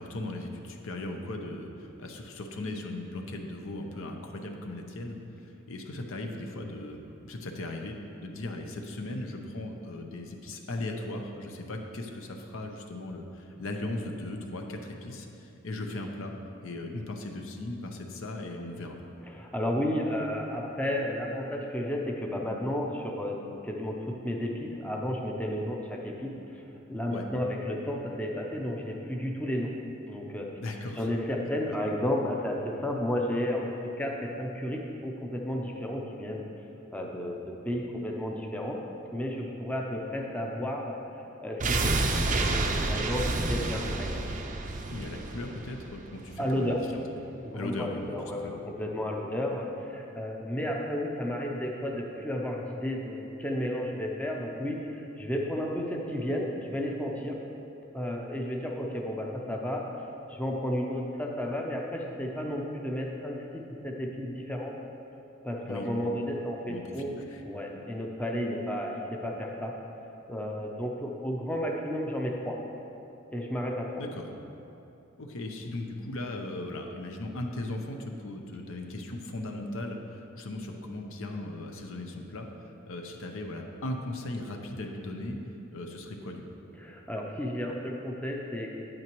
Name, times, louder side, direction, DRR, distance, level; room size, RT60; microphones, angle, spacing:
voice 1, 0.0-7.9 8.2-16.3 16.6-19.0 27.1-27.2 30.6-31.1 31.7-31.8 44.9-47.0 47.5-48.1 48.4-48.6 65.6-65.9 66.6-67.4 74.0-74.3 75.2-85.4 85.7-86.4, left 2 dB, 65° left, 3 dB, 0.7 m, -38 dB
voice 2, 19.2-29.8 30.1-30.5 31.0-36.4 36.9-38.8 39.1-41.0 41.4-44.2 46.4-46.8 47.4-57.4 57.9-59.9 60.3-64.7 65.4-67.1 67.4-69.7 70.3-72.6 73.3-73.9 86.8-88.7, left 1 dB, 5° left, 0 dB, 0.6 m, -32 dB
sound 1, 41.6-46.6 46.9-47.0, right 2 dB, 40° right, 0.5 m, -29 dB
8.9 x 8.7 x 3.1 m, 2.9 s
head